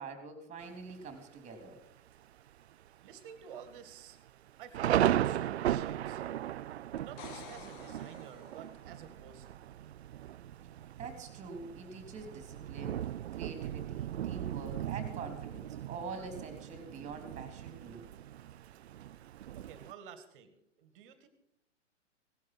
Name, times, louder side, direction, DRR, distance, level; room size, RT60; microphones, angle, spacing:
voice 1, 0.0-1.8 11.0-13.0 13.3-18.0, right 4 dB, 20° right, 7 dB, 3.5 m, -45 dB
Thunder, 0.6-1.2 1.7-1.8 2.1-2.5 2.9-3.0 3.7-19.9, right 12 dB, 60° right, 0.5 m, -37 dB
voice 2, 3.0-4.2 4.6-6.4 7.0-9.6 19.5-21.3, right 7 dB, 45° right, 11 dB, 2.1 m, -51 dB
sound 1, 7.0-8.9 12.6-12.7, left 8 dB, 35° left, 1.5 m, -51 dB
18.0 x 12.0 x 6.2 m, 0.73 s
figure-of-eight pair, 115°, 37 cm